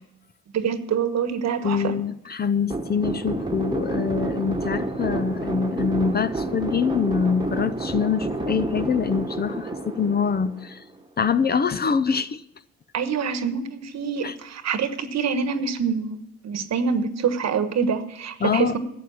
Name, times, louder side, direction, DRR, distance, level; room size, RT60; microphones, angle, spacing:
voice 1, 0.5-2.0 12.9-16.2 16.4-18.8, right 6 dB, 60° right, 10 dB, 1.2 m, -25 dB
voice 2, 1.6-10.8 11.2-12.4 14.2-14.3 18.4-18.8, left 6 dB, 35° left, 14 dB, 0.6 m, -24 dB
sound 1, 2.7-11.0, right 2 dB, 15° right, 1.3 m, -29 dB
12.0 x 7.7 x 7.1 m, 0.84 s
cardioid pair, 90°, 30 cm